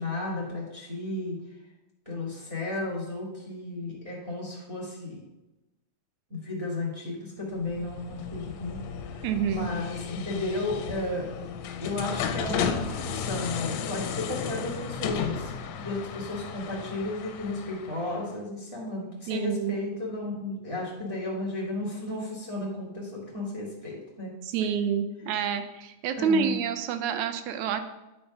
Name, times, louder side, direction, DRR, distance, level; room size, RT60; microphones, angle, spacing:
voice 1, 0.0-1.4 2.0-5.2 6.3-9.2 9.5-11.3 11.8-15.5 15.8-24.3 24.6-24.7 26.1-26.5, left 2 dB, 15° right, -3 dB, 1.6 m, -33 dB
sound 1, 7.6-18.3, left 7 dB, 75° left, 1.8 m, -34 dB
voice 2, 9.2-9.7 19.3-19.8 24.5-27.8, right 7 dB, 80° right, 9 dB, 2.0 m, -28 dB
10.0 x 4.4 x 5.3 m, 1.0 s
omnidirectional pair, 3.5 m